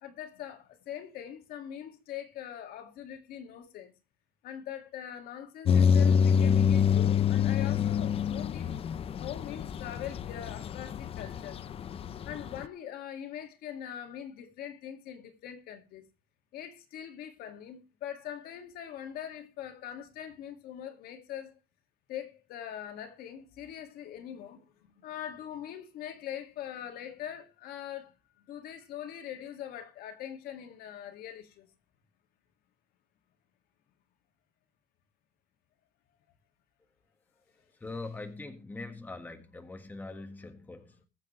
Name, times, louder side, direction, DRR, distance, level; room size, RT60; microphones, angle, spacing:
voice 1, 0.0-3.9 4.4-8.7 9.2-11.6 12.2-16.1 16.5-21.5 22.1-24.6 25.0-28.1 28.5-31.7, left 10 dB, 80° left, 2.2 m, -42 dB
sound 1, 5.6-12.6, left 7 dB, 40° left, 0.6 m, -27 dB
voice 2, 37.8-41.0, left 3 dB, 10° left, 1.7 m, -42 dB
21.5 x 7.5 x 3.2 m
cardioid pair, 145°, 16 cm